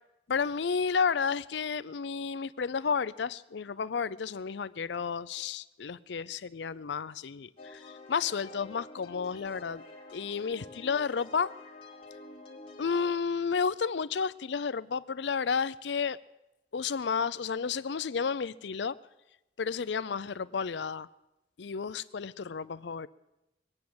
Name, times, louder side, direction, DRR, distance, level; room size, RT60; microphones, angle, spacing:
voice 1, 0.3-9.8 10.1-11.5 12.8-16.2 16.7-18.9 19.6-21.1 21.6-23.1, left 5 dB, 75° left, 17 dB, 0.5 m, -32 dB
sound 1, 7.6-13.1, left 3 dB, 25° left, 2.2 m, -48 dB
21.5 x 8.5 x 7.8 m, 0.95 s
head